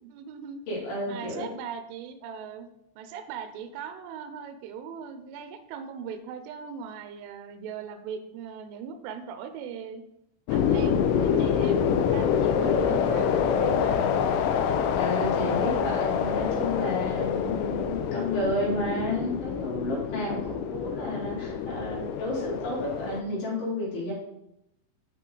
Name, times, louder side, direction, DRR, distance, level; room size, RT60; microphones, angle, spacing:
voice 1, 0.0-0.6 1.1-2.7 3.0-10.0 10.5-14.2 20.3-20.4, right 7 dB, 85° right, 8 dB, 3.2 m, -39 dB
voice 2, 0.7-1.5 15.0-24.1, left 1 dB, 50° left, -6 dB, 4.0 m, -31 dB
sound 1, 10.5-23.2, left 7 dB, 80° left, 3.0 m, -26 dB
7.8 x 5.7 x 3.8 m, 0.81 s
omnidirectional pair, 5.6 m